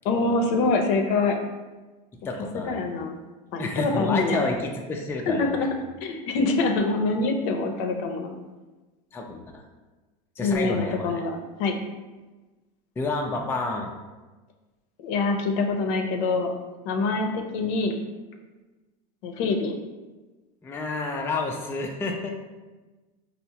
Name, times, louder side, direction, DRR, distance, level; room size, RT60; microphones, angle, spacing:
voice 1, 0.0-1.4 2.7-3.2 3.5-4.4 5.3-5.7 6.0-8.4 10.4-11.8 15.0-16.5 16.8-18.0 19.2-19.7, left 3 dB, 65° left, 4 dB, 0.6 m, -25 dB
voice 2, 2.2-2.8 3.6-5.7 9.1-9.6 10.4-11.1 13.0-13.9 20.6-22.3, left 3 dB, 10° left, 1 dB, 0.3 m, -29 dB
4.4 x 2.0 x 2.8 m, 1.2 s
supercardioid pair, 110°, 21 cm